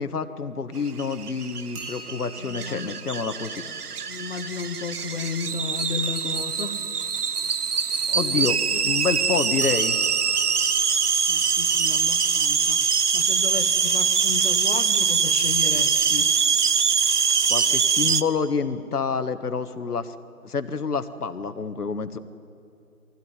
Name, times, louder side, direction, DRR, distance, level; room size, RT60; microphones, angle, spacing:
voice 1, 0.0-3.6 8.1-8.6 8.8-10.0 17.5-20.1 20.4-22.2, left 5 dB, 80° left, 10 dB, 1.4 m, -28 dB
sound 1, 0.9-18.2, right 6 dB, 90° right, 1.0 m, -23 dB
sound 2, 1.7-4.4 6.0-8.7 9.6-13.4 16.9-17.2 17.5-17.6 18.3-18.4 18.7-18.8, right 1 dB, 20° right, 2.8 m, -46 dB
voice 2, 2.4-3.0 3.6-6.8 7.8-7.9 8.2-8.8 11.3-16.3, left 5 dB, 45° left, 7 dB, 1.2 m, -34 dB
22.5 x 16.0 x 9.5 m, 2.7 s
figure-of-eight pair, 160°, 45 cm